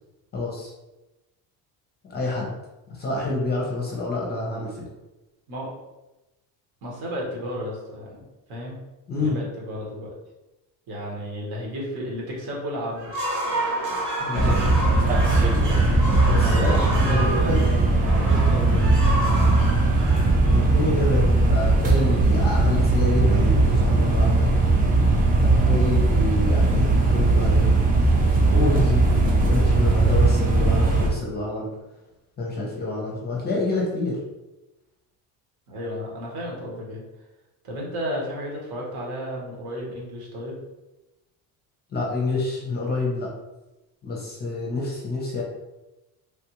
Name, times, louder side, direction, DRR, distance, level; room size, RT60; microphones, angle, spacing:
voice 1, 0.3-0.7 2.1-2.5 3.0-4.9 9.1-9.4 14.2-14.8 16.3-17.7 20.5-21.2 21.5-24.5 25.4-27.7 28.5-29.1 29.5-31.7 32.4-34.2 41.9-43.3 44.0-45.4, left 2 dB, 25° left, -3 dB, 0.6 m, -27 dB
voice 2, 6.8-8.2 8.5-8.8 9.1-10.1 10.9-13.1 14.9-15.3 15.5-15.8 16.4-18.9 35.7-37.0 37.6-40.6, equal, 65° right, -3 dB, 1.3 m, -33 dB
sound 1, 12.9-21.1, right 1 dB, 45° right, 1.0 m, -30 dB
sound 2, 14.3-31.1, right 2 dB, 20° right, 0.4 m, -19 dB
3.4 x 2.4 x 2.9 m, 1.0 s
cardioid pair, 160°, 40 cm